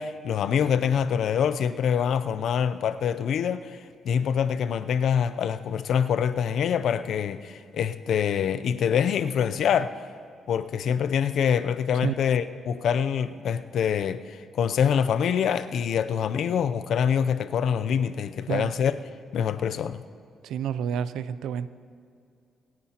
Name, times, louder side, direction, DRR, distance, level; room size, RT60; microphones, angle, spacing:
voice 1, 0.0-3.8 4.0-9.9 10.5-19.0 19.3-20.0, left 8 dB, 70° left, 0.5 m, -25 dB
voice 2, 20.4-21.7, right 9 dB, 80° right, 0.5 m, -29 dB
26.0 x 9.7 x 2.9 m
cardioid pair, 90°, 0 cm